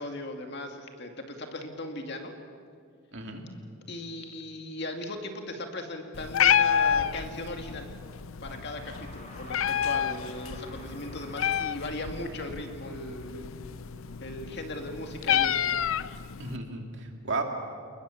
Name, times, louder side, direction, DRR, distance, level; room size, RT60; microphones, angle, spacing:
voice 1, 0.0-2.3 3.9-7.9 8.4-13.5 14.2-15.6, left 1 dB, 50° left, 4 dB, 2.3 m, -38 dB
voice 2, 3.1-3.4 16.4-17.4, right 3 dB, 55° right, 3 dB, 2.7 m, -34 dB
Meow, 6.1-16.6, left 8 dB, 65° left, 0.5 m, -29 dB
sound 1, 8.5-15.4, left 1 dB, 30° left, 4.1 m, -49 dB
30.0 x 20.5 x 7.2 m, 2.2 s
head